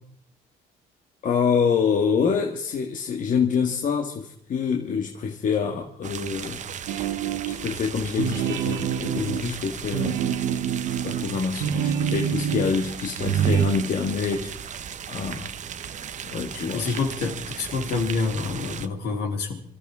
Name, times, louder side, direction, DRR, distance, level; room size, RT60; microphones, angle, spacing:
voice 1, 1.2-6.6 6.9-7.1 7.5-10.2 11.0-14.7 15.1-15.5 16.3-17.0, left 6 dB, 50° left, 2 dB, 1.8 m, -26 dB
Springbrunnen Ententeich, 6.0-18.9, right 8 dB, 45° right, 1.0 m, -37 dB
sound 1, 6.9-7.7 8.1-12.8 13.2-13.7, right 8 dB, 85° right, 1.9 m, -26 dB
voice 2, 16.7-19.6, left 4 dB, 70° left, 1 dB, 3.8 m, -27 dB
26.5 x 13.5 x 3.7 m, 0.64 s
cardioid pair, 110°, 17 cm